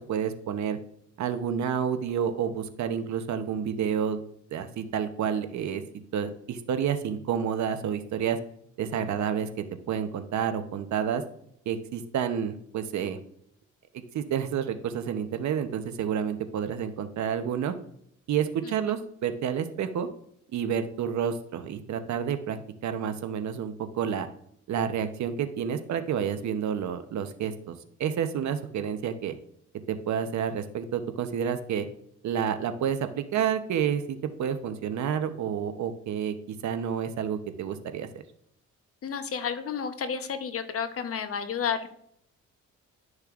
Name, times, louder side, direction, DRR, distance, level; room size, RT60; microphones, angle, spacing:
voice 1, 0.1-0.8 1.2-4.2 4.5-5.8 6.1-8.4 8.8-11.2 11.7-13.2 13.9-17.7 18.3-20.1 20.5-24.3 24.7-29.4 29.9-31.9 32.2-38.2, right 8 dB, 65° right, 9 dB, 0.9 m, -29 dB
voice 2, 39.0-41.9, left 7 dB, 50° left, 9 dB, 0.9 m, -31 dB
12.0 x 6.4 x 2.5 m, 0.71 s
cardioid pair, 90°, 30 cm